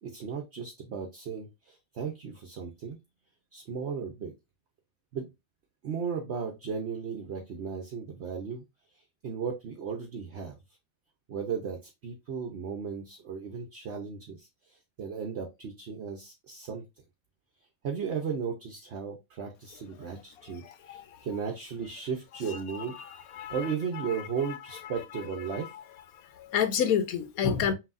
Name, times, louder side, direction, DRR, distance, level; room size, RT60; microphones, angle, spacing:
voice 1, 0.0-3.0 3.5-4.3 5.1-5.3 5.8-8.6 9.2-10.6 11.3-16.8 17.8-22.9 23.5-25.7, right 6 dB, 55° right, 0.9 m, -35 dB
voice 2, 20.6-21.2 22.5-24.2 24.4-24.6 25.5-25.8 26.3-27.7, left 8 dB, 85° left, 1.2 m, -31 dB
5.7 x 2.7 x 2.5 m
omnidirectional pair, 1.5 m